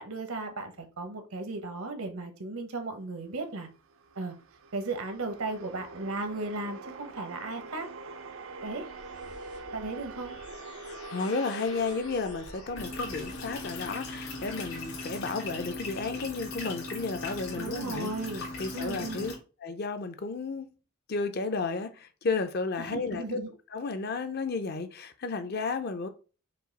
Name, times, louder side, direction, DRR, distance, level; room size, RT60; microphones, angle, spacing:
voice 1, 0.0-3.7 4.2-4.3 4.7-7.9 8.6-8.9 9.7-10.4 17.5-18.5 18.7-19.3 22.8-23.5, right 2 dB, 80° right, 1.0 m, -36 dB
sound 1, 3.6-14.0, right 3 dB, 65° right, 0.4 m, -45 dB
sound 2, 7.9-15.5, left 3 dB, 85° left, 1.2 m, -49 dB
voice 2, 11.1-19.3 19.6-20.7 21.1-23.4 23.7-26.1, left 4 dB, 45° left, 0.5 m, -33 dB
sound 3, 12.7-19.3, left 2 dB, 70° left, 2.3 m, -38 dB
5.4 x 2.4 x 4.0 m
head